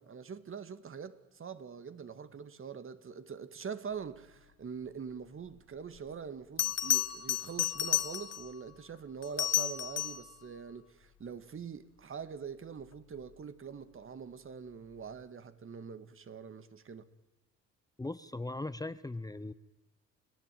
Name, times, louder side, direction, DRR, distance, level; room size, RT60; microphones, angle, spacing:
voice 1, 0.0-17.1, right 6 dB, 45° right, 1.9 m, -44 dB
Bell, 6.0-6.1 6.6-8.5 9.2-10.3 13.0-13.2, left 11 dB, 55° left, 1.5 m, -32 dB
voice 2, 18.0-19.5, left 2 dB, 10° left, 0.8 m, -39 dB
29.5 x 17.5 x 9.2 m
cardioid pair, 90°, 30 cm